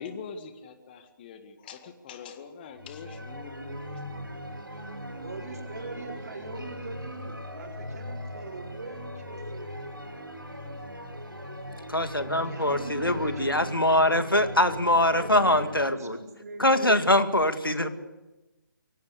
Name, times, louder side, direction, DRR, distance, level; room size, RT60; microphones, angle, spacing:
voice 1, 0.0-4.4, left 6 dB, 25° left, 8 dB, 1.9 m, -43 dB
sound 1, 2.7-15.8, equal, 90° right, 6.0 m, -40 dB
voice 2, 5.2-9.9 12.4-14.4 15.1-17.0 17.7-17.9, right 4 dB, 50° right, 2 dB, 4.8 m, -42 dB
voice 3, 11.9-16.2 16.6-17.9, left 1 dB, 90° left, 9 dB, 2.1 m, -23 dB
23.5 x 17.5 x 8.2 m, 1.0 s
figure-of-eight pair, 145°, 11 cm